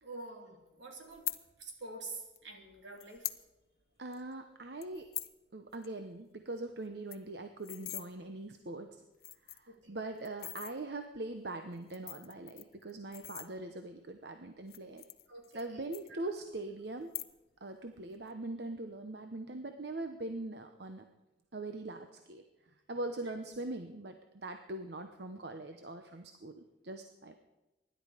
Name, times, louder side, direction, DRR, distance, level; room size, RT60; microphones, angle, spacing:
voice 1, 0.0-1.3 1.6-3.3 9.7-10.0 15.3-16.2, right 3 dB, 85° right, 2 dB, 3.3 m, -47 dB
sound 1, 1.1-1.4 2.4-2.5 3.0-3.4 3.8-3.9 4.1-4.3 4.8-5.4 5.7-5.9 6.2-6.3 6.6-6.7 6.9-8.1 8.7-8.8 9.1-9.7 10.2-10.7 11.7-13.9 14.6-15.7 15.9-16.6 17.0-17.6 17.9-18.3, left 16 dB, 55° left, 0.7 m, -43 dB
voice 2, 4.0-5.1 5.5-9.0 9.5-15.0 15.5-17.1 17.6-21.0 21.5-22.4 22.9-27.4, right 2 dB, 65° right, 6 dB, 0.9 m, -42 dB
24.5 x 11.5 x 5.1 m, 1.0 s
head